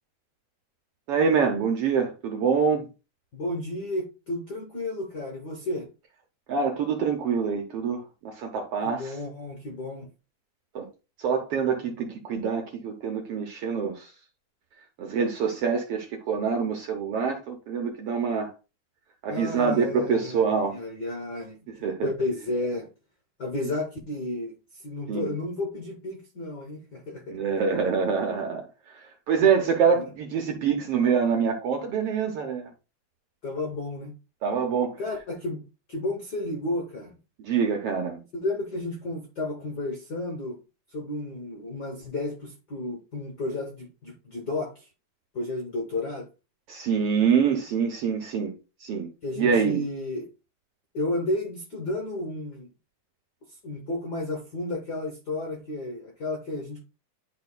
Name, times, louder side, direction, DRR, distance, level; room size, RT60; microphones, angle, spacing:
voice 1, 1.1-2.9 6.5-9.2 10.7-10.9 11.2-14.1 15.0-18.5 19.2-20.8 21.7-22.1 25.1-25.3 27.3-32.7 34.4-35.0 37.4-38.2 46.7-48.5 48.8-49.1 49.4-49.8, right 6 dB, 70° right, 1.4 m, -25 dB
voice 2, 3.3-5.9 8.8-10.1 19.3-21.6 22.0-22.9 23.4-27.4 33.4-34.2 35.0-35.6 35.9-37.2 38.3-40.6 40.9-44.9 45.3-46.3 49.2-50.3 50.9-52.7 53.5-56.8, left 2 dB, 75° left, 0.9 m, -32 dB
10.5 x 4.4 x 2.2 m
omnidirectional pair, 3.4 m